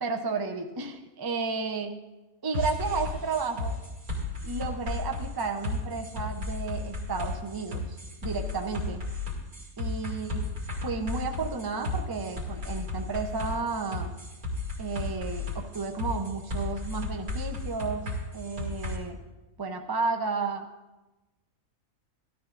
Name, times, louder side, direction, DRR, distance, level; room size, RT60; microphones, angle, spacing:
voice 1, 0.0-1.9 2.4-3.8 4.4-9.0 9.8-10.5 10.8-14.1 14.8-18.0 18.3-19.2 19.6-20.7, right 4 dB, 30° right, 3 dB, 0.4 m, -32 dB
sound 1, 2.5-19.0, left 2 dB, 85° right, 3.0 m, -34 dB
16.0 x 13.0 x 2.5 m, 1.1 s
omnidirectional pair, 1.5 m